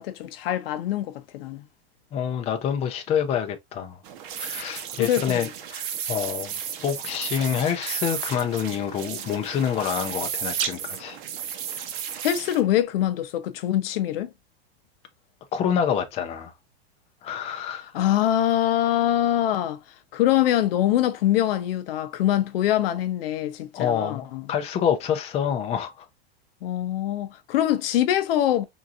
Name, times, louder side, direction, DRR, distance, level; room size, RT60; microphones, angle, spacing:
voice 1, 0.0-1.6 5.0-5.5 12.2-14.3 17.9-19.8 20.1-24.4 26.6-28.6, left 12 dB, 70° left, 0.7 m, -24 dB
voice 2, 2.1-4.0 4.4-6.5 6.8-11.2 15.5-16.5 17.2-17.9 23.7-26.0, left 8 dB, 20° left, 0.5 m, -27 dB
sound 1, 4.0-12.6, right 8 dB, 55° right, 0.9 m, -33 dB
3.8 x 2.7 x 2.4 m
supercardioid pair, 135°, 31 cm